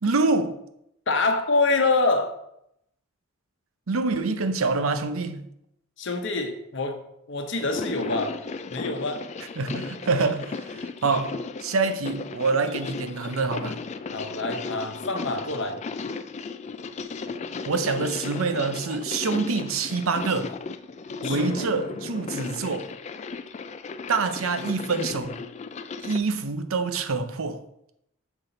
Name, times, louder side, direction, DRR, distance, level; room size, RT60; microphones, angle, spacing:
voice 1, 0.0-0.6 3.9-5.4 9.6-13.8 17.7-20.6 21.2-22.9 24.1-25.4 26.0-27.6, right 4 dB, 90° right, 0.7 m, -26 dB
voice 2, 1.1-2.4 6.0-7.0 7.3-8.4 8.7-9.2 14.1-15.8 21.2-21.7, left 3 dB, 60° left, 0.9 m, -26 dB
sound 1, 7.6-26.2, left 4 dB, 35° left, 0.3 m, -35 dB
7.0 x 5.8 x 3.9 m
head